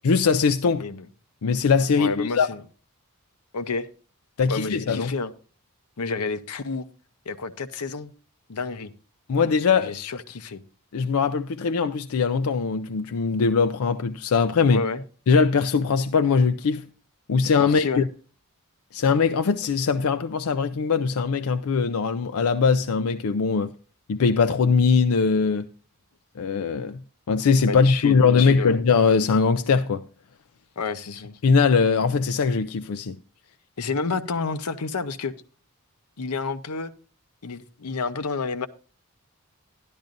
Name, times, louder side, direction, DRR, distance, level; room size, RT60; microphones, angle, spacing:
voice 1, 0.0-0.8 1.4-2.5 4.4-5.1 9.3-9.9 10.9-14.8 15.3-16.9 17.3-18.1 18.9-23.7 24.1-25.7 26.4-27.0 27.3-30.0 31.4-33.2, left 5 dB, 70° left, 0.4 m, -21 dB
voice 2, 2.0-2.6 3.5-3.9 4.5-5.3 6.0-6.8 7.3-8.1 8.5-8.9 9.7-10.6 14.7-15.0 17.6-18.0 27.7-28.7 30.8-31.4 33.8-35.3 36.2-36.9 37.4-38.7, left 4 dB, 90° left, 0.8 m, -30 dB
12.0 x 11.5 x 2.6 m
head